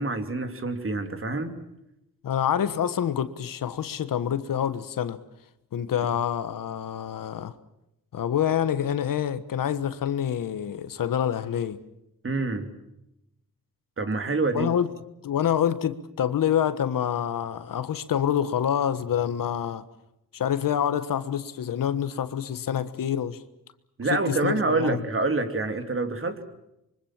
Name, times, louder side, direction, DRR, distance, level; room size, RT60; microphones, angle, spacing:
voice 1, 0.0-1.5 12.2-12.7 14.0-14.7 24.0-26.4, right 3 dB, 40° right, 2.9 m, -27 dB
voice 2, 2.2-5.2 5.7-7.5 8.1-11.8 14.5-14.9 15.2-19.8 20.3-23.4 24.1-25.0, left 9 dB, 70° left, 1.4 m, -27 dB
26.0 x 24.0 x 7.4 m
cardioid pair, 100°, 34 cm